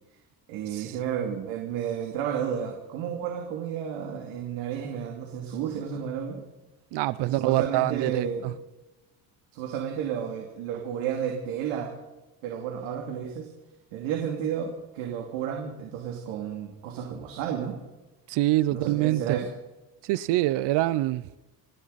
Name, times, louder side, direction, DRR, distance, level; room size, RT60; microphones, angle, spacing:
voice 1, 0.5-6.4 7.2-8.4 9.5-11.9 12.4-13.5 13.9-17.8 18.7-19.5, right 8 dB, 90° right, 2.8 m, -32 dB
voice 2, 6.9-8.5 18.3-19.2 20.0-21.2, right 16 dB, 60° right, 0.7 m, -25 dB
28.0 x 10.5 x 4.2 m
cardioid pair, 155°, 46 cm